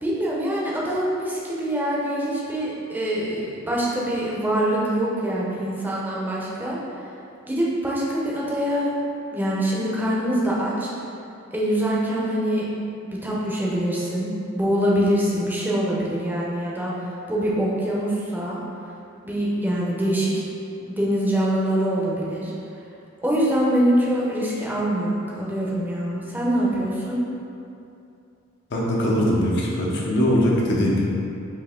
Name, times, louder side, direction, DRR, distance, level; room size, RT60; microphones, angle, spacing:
voice 1, 0.0-3.4 3.7-6.8 7.4-8.9 9.3-10.9 11.5-12.7 13.0-18.6 19.2-20.4 20.8-22.5 23.2-27.2, right 1 dB, 10° right, -6 dB, 0.7 m, -24 dB
voice 2, 28.7-31.1, equal, 60° left, -4 dB, 0.8 m, -21 dB
4.8 x 2.8 x 3.6 m, 2.6 s
head